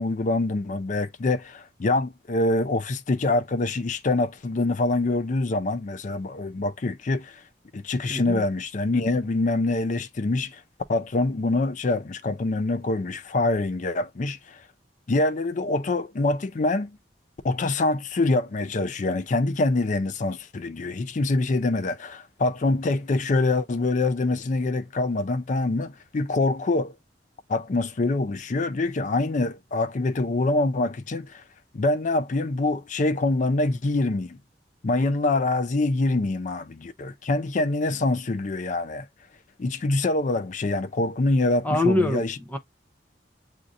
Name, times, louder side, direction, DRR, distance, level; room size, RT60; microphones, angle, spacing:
voice 1, 0.0-7.4 7.7-10.6 10.9-14.6 15.1-17.0 17.4-26.9 27.5-31.4 31.7-34.4 34.8-39.1 39.6-42.4, left 2 dB, 45° left, 0.5 m, -25 dB
voice 2, 8.1-8.4 41.6-42.6, left 2 dB, 10° left, 0.7 m, -24 dB
7.4 x 2.7 x 2.5 m
head